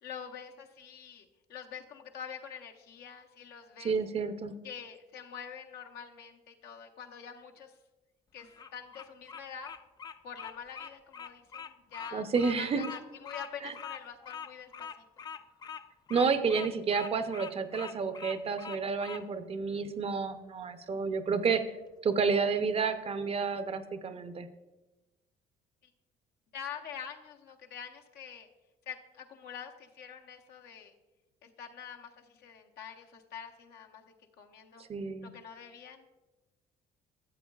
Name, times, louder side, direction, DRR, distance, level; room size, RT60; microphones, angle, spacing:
voice 1, 0.0-3.9 4.6-7.7 8.3-9.7 10.2-12.3 12.6-14.9 26.5-28.5 28.9-30.9 31.4-34.9 35.2-36.1, left 7 dB, 70° left, 3 dB, 0.9 m, -46 dB
voice 2, 3.8-4.5 12.1-12.9 13.6-13.7 16.1-21.6 22.0-24.5 34.8-35.3, right 5 dB, 35° right, 10 dB, 0.6 m, -30 dB
Bird vocalization bird call bird song, 8.4-19.2, left 7 dB, 25° left, 0.3 m, -44 dB
12.5 x 7.6 x 2.3 m, 1.1 s
cardioid pair, 110°, 17 cm